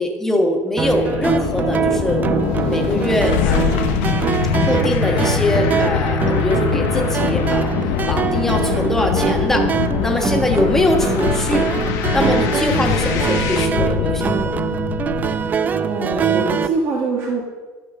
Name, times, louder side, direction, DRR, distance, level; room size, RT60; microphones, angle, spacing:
voice 1, 0.0-2.2 2.6-3.7 4.6-7.7 8.1-9.7 10.0-11.7 12.1-14.5, left 1 dB, 5° left, 2 dB, 1.3 m, -22 dB
sound 1, 0.8-13.7, left 7 dB, 60° left, 1.2 m, -29 dB
sound 2, 0.8-16.7, right 6 dB, 25° right, 0.5 m, -22 dB
sound 3, 2.5-15.6, left 11 dB, 90° left, 0.6 m, -23 dB
voice 2, 15.3-17.4, right 3 dB, 45° right, -2 dB, 1.6 m, -24 dB
12.0 x 5.3 x 6.3 m, 1.3 s
cardioid pair, 140°, 6 cm